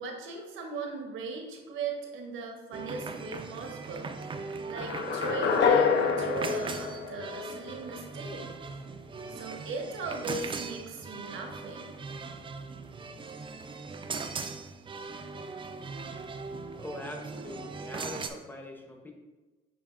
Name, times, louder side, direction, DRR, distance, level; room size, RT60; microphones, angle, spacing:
voice 1, 0.0-4.1 4.4-8.4 9.3-11.9, right 4 dB, 80° right, 2 dB, 0.9 m, -38 dB
sound 1, 2.7-18.3, right 4 dB, 25° right, 0.4 m, -40 dB
sound 2, 4.8-7.9, left 6 dB, 60° left, 0.4 m, -27 dB
voice 2, 16.6-19.1, left 1 dB, 10° left, 2 dB, 0.7 m, -42 dB
7.1 x 2.8 x 2.4 m, 1.2 s
cardioid pair, 90°, 20 cm